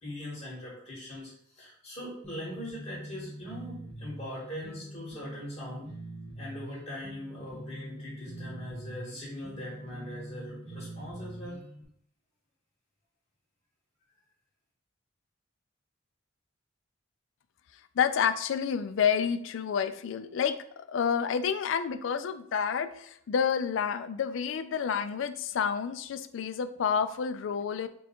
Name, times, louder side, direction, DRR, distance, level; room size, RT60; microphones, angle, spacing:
voice 1, 0.0-5.9 6.3-11.6, left 1 dB, 30° left, -6 dB, 1.8 m, -41 dB
sound 1, 2.2-11.8, right 1 dB, 5° left, 1.2 m, -44 dB
voice 2, 18.0-27.9, left 7 dB, 65° left, 11 dB, 0.3 m, -29 dB
4.3 x 2.3 x 4.5 m, 0.67 s
head